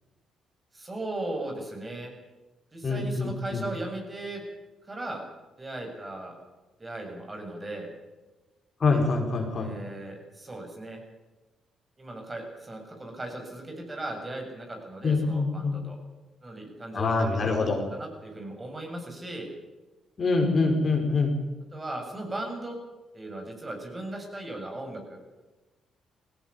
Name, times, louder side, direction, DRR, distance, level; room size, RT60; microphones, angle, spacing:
voice 1, 0.7-2.1 2.7-4.4 4.8-5.2 5.6-6.4 6.8-7.9 9.5-11.0 12.0-16.0 16.4-19.5 21.7-22.8 23.1-25.2, right 2 dB, 25° right, 3 dB, 7.6 m, -37 dB
voice 2, 2.8-3.6 8.8-9.7 15.0-15.8 16.9-17.8 20.2-21.3, left 3 dB, 45° left, 3 dB, 5.1 m, -25 dB
18.0 x 17.0 x 10.0 m, 1.1 s
supercardioid pair, 60°, 0 cm